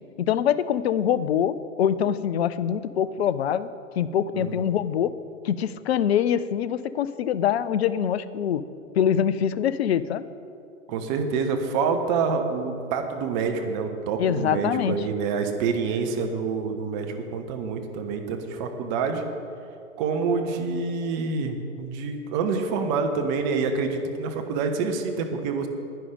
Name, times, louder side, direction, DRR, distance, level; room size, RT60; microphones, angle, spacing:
voice 1, 0.2-3.7 4.0-5.1 5.4-8.6 9.0-10.3 14.2-15.0, left 9 dB, 50° left, 15 dB, 0.5 m, -24 dB
voice 2, 10.9-19.2 20.0-25.7, right 5 dB, 35° right, 5 dB, 1.1 m, -27 dB
10.5 x 9.8 x 5.2 m, 2.6 s
figure-of-eight pair, 105°, 40 cm